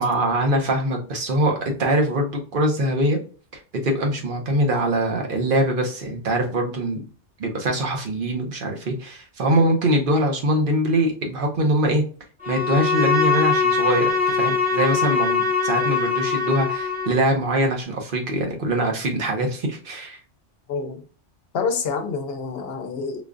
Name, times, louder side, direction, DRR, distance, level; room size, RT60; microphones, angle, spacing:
voice 1, 0.0-3.2 3.5-7.0 7.4-12.0 12.5-20.2, right 1 dB, 55° right, 1.0 m, -23 dB
Bowed string instrument, 12.4-17.2, left 4 dB, 10° right, 0.7 m, -22 dB
voice 2, 20.7-21.0 21.5-23.2, left 5 dB, 65° left, 0.8 m, -27 dB
5.0 x 2.3 x 2.4 m
omnidirectional pair, 1.2 m